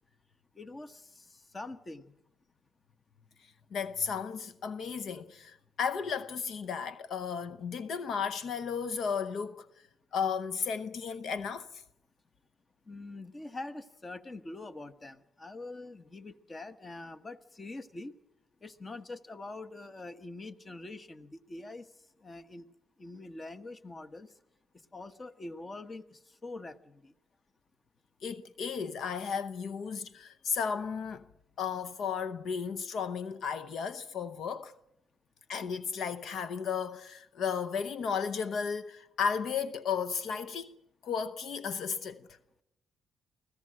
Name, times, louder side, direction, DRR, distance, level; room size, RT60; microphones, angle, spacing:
voice 1, 0.5-2.2 12.8-18.1 18.6-22.7 23.0-24.3 24.7-27.1, left 2 dB, 25° left, 1.2 m, -44 dB
voice 2, 3.7-9.7 10.1-11.8 28.2-31.2 31.6-34.7 35.5-42.3, left 6 dB, 65° left, 0.8 m, -34 dB
24.5 x 16.0 x 7.6 m
cardioid pair, 90°, 0 cm